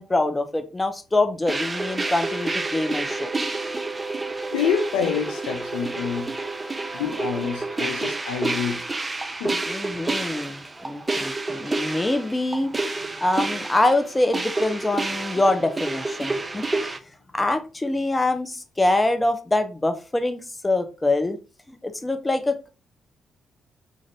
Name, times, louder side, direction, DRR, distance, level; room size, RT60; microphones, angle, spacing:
voice 1, 0.0-3.3 9.7-12.7 13.2-16.9 17.3-21.4 21.8-22.7, left 2 dB, 20° left, 0.6 m, -24 dB
sound 1, 1.5-17.0, right 2 dB, 25° right, 0.4 m, -29 dB
voice 2, 4.5-6.3 6.9-8.8 9.4-9.6, left 7 dB, 85° left, 0.4 m, -27 dB
2.5 x 2.5 x 3.1 m
hypercardioid pair, 45°, 0 cm